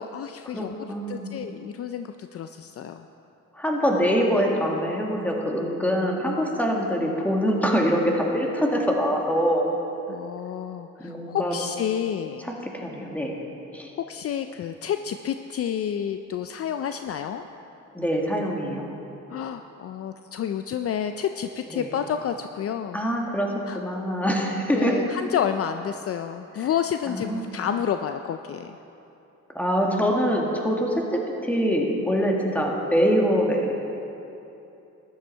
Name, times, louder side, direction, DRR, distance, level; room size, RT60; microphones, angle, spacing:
voice 1, 0.0-0.8 1.1-3.1 10.1-12.5 14.1-17.4 19.3-23.0 23.7-23.8 24.8-28.8, left 8 dB, 50° left, 8 dB, 0.5 m, -30 dB
voice 2, 0.5-1.4 3.5-9.8 11.0-11.5 12.4-13.3 13.7-13.9 17.9-19.0 21.7-21.9 22.9-25.0 26.6-26.7 27.1-27.7 29.5-33.7, equal, 5° left, -1 dB, 1.9 m, -24 dB
13.5 x 10.5 x 4.5 m, 2.9 s
cardioid pair, 90°, 30 cm